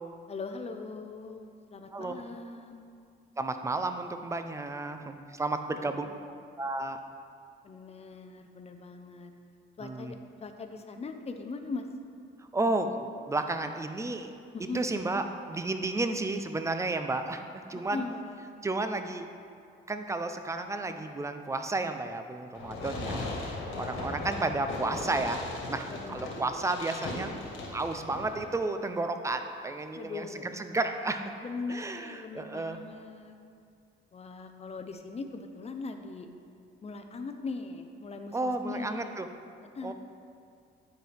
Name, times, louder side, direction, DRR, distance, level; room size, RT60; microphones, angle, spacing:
voice 1, 0.3-2.8 5.7-6.2 7.6-9.3 9.8-11.9 14.5-14.9 17.7-18.5 23.6-24.4 25.9-26.6 29.9-30.8 31.4-33.4 34.1-36.3 36.8-39.3 39.7-39.9, left 4 dB, 30° left, 6 dB, 0.7 m, -40 dB
voice 2, 3.4-6.1 6.6-7.0 9.8-10.1 12.4-14.3 14.7-18.0 18.6-19.3 19.9-23.3 23.8-25.4 25.7-27.3 27.7-30.3 30.5-31.2 31.7-32.8 38.3-39.3 39.8-39.9, right 2 dB, 15° right, 7 dB, 0.5 m, -32 dB
Fireworks, 22.5-28.5, left 2 dB, 80° left, 1.7 m, -38 dB
10.5 x 4.7 x 3.4 m, 2.3 s
cardioid pair, 90°, 20 cm